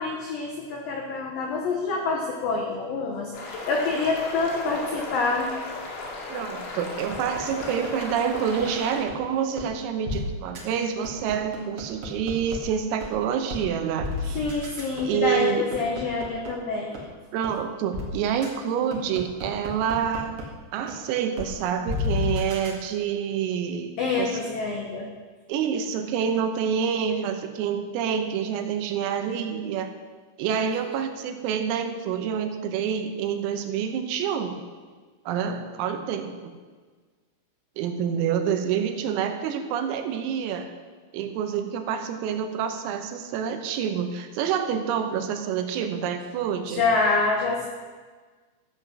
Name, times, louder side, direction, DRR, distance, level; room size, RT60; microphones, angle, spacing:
voice 1, 0.0-5.5 14.4-16.9 24.0-25.1 46.7-47.7, left 3 dB, 85° left, 0 dB, 2.0 m, -26 dB
sound 1, 3.3-9.0, left 3 dB, 65° left, 4.5 m, -36 dB
voice 2, 6.3-14.4 15.0-15.7 17.3-20.4 20.7-24.4 25.5-29.9 30.4-34.6 35.3-36.5 37.8-40.7 41.1-46.9, right 8 dB, 90° right, 6 dB, 3.7 m, -27 dB
sound 2, 7.1-8.6 9.1-9.2 9.6-9.7 10.1-10.2 10.5-10.6 11.0-12.6 13.0-13.1 13.5-13.6 14.0-16.5 16.9-17.0 17.4-17.5 17.9-18.1 18.4-18.5 18.9-20.4 20.9-21.0 21.4-21.5 21.9-22.7, left 3 dB, 60° right, 1.4 m, -31 dB
14.0 x 7.8 x 6.2 m, 1.4 s
omnidirectional pair, 5.9 m